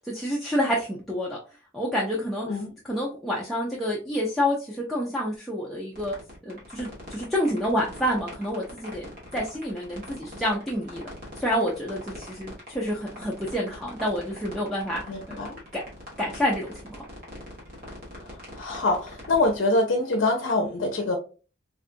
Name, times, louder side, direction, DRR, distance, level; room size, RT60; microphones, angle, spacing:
voice 1, 0.0-1.4 1.7-2.5 2.9-6.1 6.4-11.1 11.4-15.2 15.7-15.8 16.2-17.0, equal, ahead, 0.5 m, -28 dB
sound 1, 5.9-19.6, left 1 dB, 45° right, 1.3 m, -43 dB
voice 2, 15.1-15.6 18.2-21.2, left 2 dB, 65° left, 0.5 m, -25 dB
3.7 x 2.3 x 2.5 m
head